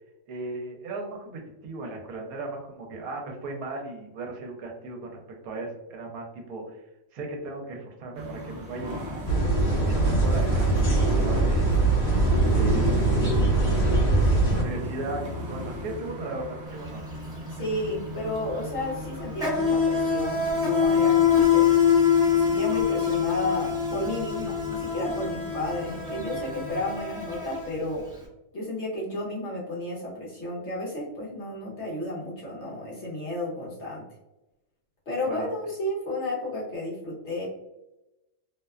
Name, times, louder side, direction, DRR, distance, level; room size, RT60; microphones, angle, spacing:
voice 1, 0.3-5.2 5.4-6.8 7.1-11.7 12.4-13.5 14.6-17.0 35.2-35.5, right 2 dB, 75° right, 1 dB, 1.0 m, -37 dB
sound 1, 8.1-26.8, equal, 50° right, 0.8 m, -38 dB
sound 2, 9.3-14.6, right 2 dB, 40° left, 1.1 m, -22 dB
Insect, 16.7-16.9 17.1-28.1, left 7 dB, 5° right, 0.6 m, -24 dB
voice 2, 17.5-21.7 22.3-28.0 28.5-34.0 35.1-37.5, left 1 dB, 60° left, -4 dB, 0.8 m, -32 dB
2.7 x 2.1 x 2.2 m, 0.95 s
omnidirectional pair, 1.6 m